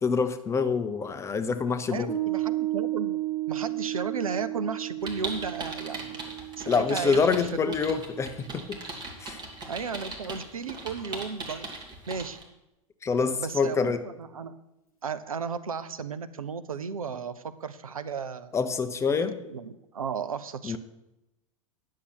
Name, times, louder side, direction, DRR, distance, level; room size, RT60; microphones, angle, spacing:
voice 1, 0.0-2.1 6.7-8.8 9.2-9.4 13.0-14.0 18.5-19.3 20.6-20.8, left 5 dB, 15° left, 10 dB, 0.6 m, -26 dB
voice 2, 1.9-3.2 3.5-6.2 6.6-8.0 9.7-11.7 12.1-12.4 13.4-14.5 15.0-18.5 19.2-20.8, right 5 dB, 75° right, 12 dB, 0.6 m, -34 dB
Piano, 2.1-8.8, right 16 dB, 90° right, 2.0 m, -33 dB
sound 1, 5.0-12.4, right 2 dB, 25° right, 1.7 m, -39 dB
10.0 x 6.5 x 5.9 m, 0.91 s
figure-of-eight pair, 95°, 18 cm